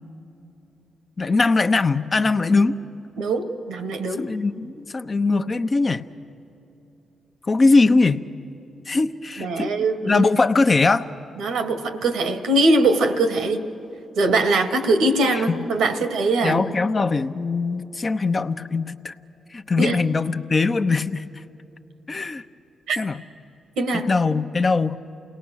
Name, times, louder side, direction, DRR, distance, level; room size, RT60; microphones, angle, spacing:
voice 1, 1.2-2.8 4.2-6.1 7.5-8.2 8.9-11.1 15.3-15.6 16.4-19.1 19.5-21.3 22.1-22.4 23.0-23.2 23.9-25.0, left 3 dB, 40° left, 9 dB, 0.8 m, -21 dB
voice 2, 3.2-4.3 9.4-10.3 11.4-13.6 14.2-16.6 19.8-20.0 22.9-23.0 23.8-24.1, right 2 dB, 80° right, 7 dB, 1.4 m, -21 dB
28.5 x 18.5 x 6.4 m, 3.0 s
supercardioid pair, 50°, 0 cm